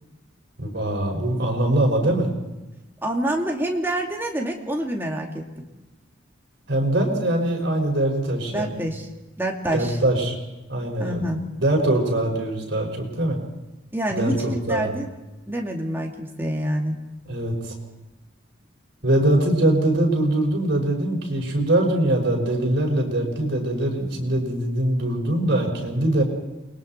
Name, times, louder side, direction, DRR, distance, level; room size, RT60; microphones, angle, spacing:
voice 1, 0.6-2.3 6.7-8.7 9.7-10.4 10.7-11.2 11.6-13.4 14.1-14.9 17.3-17.7 19.0-26.2, right 1 dB, 60° right, 0 dB, 5.9 m, -22 dB
voice 2, 3.0-5.6 8.5-9.1 9.4-10.0 11.0-11.4 13.9-15.1 15.5-17.0, right 1 dB, 10° right, 0 dB, 2.4 m, -27 dB
29.0 x 22.0 x 4.5 m, 1.0 s
head